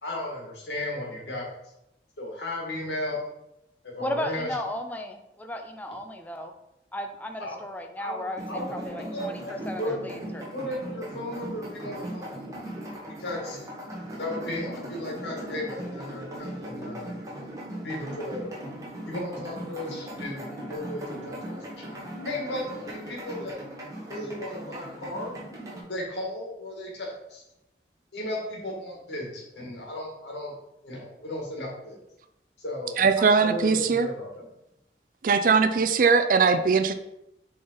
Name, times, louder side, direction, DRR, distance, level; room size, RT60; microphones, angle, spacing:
voice 1, 0.0-1.5 2.2-3.3 3.8-4.5 7.4-7.6 8.0-10.0 10.5-12.3 13.0-13.6 14.2-17.1 17.8-18.5 19.0-21.8 22.2-23.6 24.1-25.3 25.9-27.4 28.1-30.5 30.8-32.0 32.6-34.5, left 1 dB, 80° left, -2 dB, 1.9 m, -35 dB
voice 2, 4.0-6.5 6.9-10.5, left 1 dB, 10° left, 4 dB, 0.5 m, -35 dB
sound 1, 8.4-25.8, right 1 dB, 20° right, 1.4 m, -38 dB
voice 3, 33.0-34.1 35.2-36.9, right 5 dB, 50° right, 10 dB, 0.4 m, -20 dB
6.6 x 3.9 x 4.0 m, 0.87 s
head